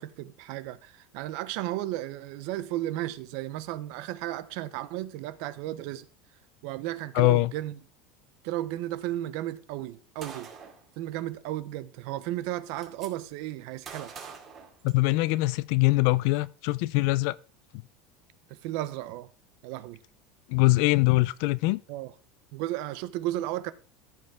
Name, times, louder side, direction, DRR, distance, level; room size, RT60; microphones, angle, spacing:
voice 1, 0.0-6.1 6.6-7.7 8.4-10.5 11.0-14.1 18.5-19.3 19.6-20.0 21.9-22.1 22.5-23.7, right 14 dB, 60° right, 0.8 m, -34 dB
voice 2, 7.1-7.5 14.8-17.4 20.5-21.8, left 21 dB, 60° left, 0.4 m, -23 dB
Gunshot gunfire, 10.2-10.8 12.0-12.1 12.4-13.1 13.9-15.3, right 6 dB, 30° right, 2.3 m, -44 dB
14.0 x 5.5 x 3.6 m
supercardioid pair, 160°, 0 cm